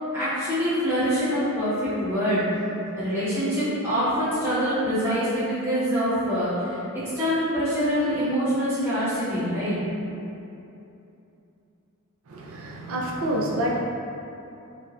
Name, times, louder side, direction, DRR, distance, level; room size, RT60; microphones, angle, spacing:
voice 1, 0.1-2.4 3.0-9.8, equal, 10° right, -14 dB, 0.8 m, -25 dB
voice 2, 12.3-13.8, right 1 dB, 65° right, -2 dB, 0.4 m, -27 dB
3.1 x 2.2 x 2.4 m, 2.8 s
head